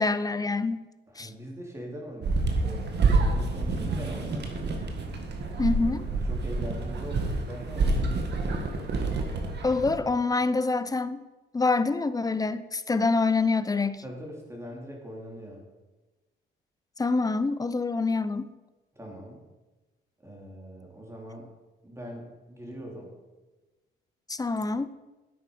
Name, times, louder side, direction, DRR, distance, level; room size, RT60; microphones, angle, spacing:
voice 1, 0.0-0.9 1.2-1.3 5.6-6.1 9.6-11.2 11.5-14.0 17.0-18.5 24.3-24.9, left 3 dB, 20° left, 14 dB, 0.6 m, -26 dB
voice 2, 1.1-4.6 5.8-8.4 14.0-15.6 18.9-19.4 20.2-21.5 21.8-23.1, equal, 15° right, -1 dB, 3.3 m, -41 dB
sound 1, 2.2-10.0, right 3 dB, 60° right, 1.8 m, -28 dB
11.0 x 8.2 x 5.2 m, 1.2 s
cardioid pair, 90°, 20 cm